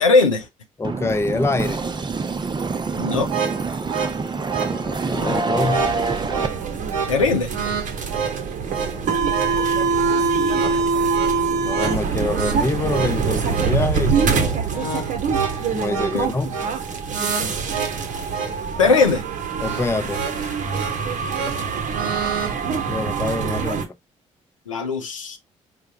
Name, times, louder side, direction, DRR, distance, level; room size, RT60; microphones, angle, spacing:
voice 1, 0.0-0.5 3.0-3.3 7.1-7.5 16.1-16.2 18.8-19.2 24.7-25.4, left 4 dB, 85° left, 0.5 m, -18 dB
voice 2, 0.8-1.8 4.3-5.9 8.6-9.6 11.6-14.6 15.7-16.5 19.6-20.2 22.9-24.0, left 3 dB, 15° left, 0.6 m, -26 dB
sound 1, 0.8-6.5, right 4 dB, 25° right, 0.7 m, -26 dB
sound 2, 3.1-22.5, right 6 dB, 85° right, 0.6 m, -30 dB
sound 3, 5.5-23.8, right 5 dB, 50° right, 0.9 m, -24 dB
4.8 x 2.2 x 3.9 m
figure-of-eight pair, 40°, 16 cm